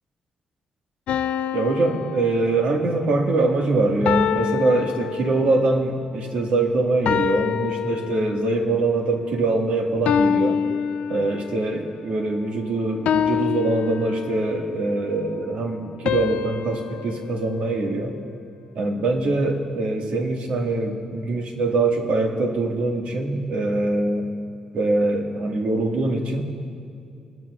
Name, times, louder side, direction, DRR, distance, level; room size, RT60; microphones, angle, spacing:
sound 1, 1.1-3.0 4.1-5.7 7.1-8.6 10.1-11.7 13.1-14.7 16.1-18.4, left 8 dB, 85° left, 0.4 m, -26 dB
voice 1, 1.5-10.6 11.1-18.1 18.7-24.3 24.7-26.4, right 2 dB, 75° right, 2 dB, 1.7 m, -23 dB
26.0 x 13.0 x 2.4 m, 2.5 s
cardioid pair, 105°, 2 cm